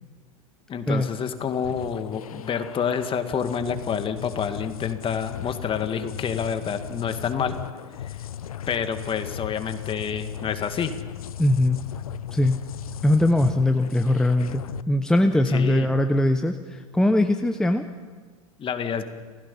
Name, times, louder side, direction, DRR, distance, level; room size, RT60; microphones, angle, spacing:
voice 1, 0.7-7.6 7.9-8.2 8.7-10.9 15.5-15.9 18.6-19.0, left 7 dB, 30° left, 8 dB, 2.0 m, -28 dB
sound 1, 1.5-14.8, left 10 dB, 85° left, 0.6 m, -37 dB
voice 2, 11.4-11.8 12.3-12.6 13.0-17.8, left 1 dB, 5° left, 6 dB, 1.0 m, -21 dB
30.0 x 16.0 x 5.6 m, 1.5 s
hypercardioid pair, 95°, 18 cm